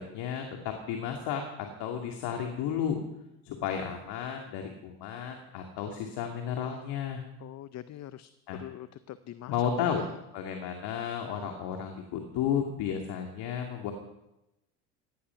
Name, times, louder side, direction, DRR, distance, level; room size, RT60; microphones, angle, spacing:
voice 1, 0.0-3.0 3.4-7.2 8.5-8.6 9.5-10.0 10.3-13.9, left 8 dB, 55° left, 3 dB, 2.5 m, -33 dB
voice 2, 7.4-8.3 8.6-10.1, left 12 dB, 35° left, 14 dB, 0.7 m, -44 dB
17.5 x 13.0 x 5.8 m, 0.91 s
hypercardioid pair, 75°, 46 cm